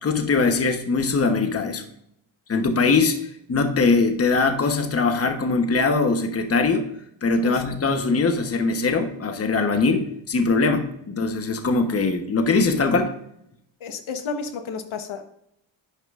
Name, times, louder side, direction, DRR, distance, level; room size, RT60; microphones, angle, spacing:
voice 1, 0.0-1.8 2.5-3.2 3.5-6.9 7.2-13.1, left 4 dB, 30° left, 6 dB, 1.0 m, -21 dB
voice 2, 13.8-15.2, left 5 dB, 75° left, 7 dB, 1.2 m, -31 dB
11.5 x 9.1 x 2.5 m, 0.75 s
wide cardioid pair, 125°, 48 cm